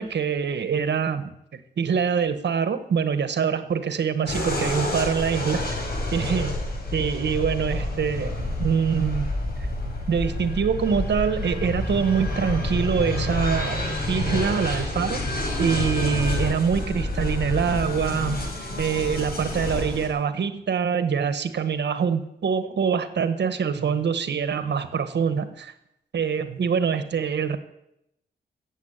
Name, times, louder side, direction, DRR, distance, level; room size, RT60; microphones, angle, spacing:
voice 1, 0.0-5.7 6.1-6.5 6.9-8.3 8.6-9.3 10.1-18.4 18.8-25.7 26.1-27.6, right 6 dB, 75° right, 10 dB, 1.4 m, -25 dB
sound 1, 4.3-20.1, left 2 dB, 60° left, 4.9 m, -28 dB
15.5 x 7.6 x 9.0 m, 0.81 s
wide cardioid pair, 120°, 18 cm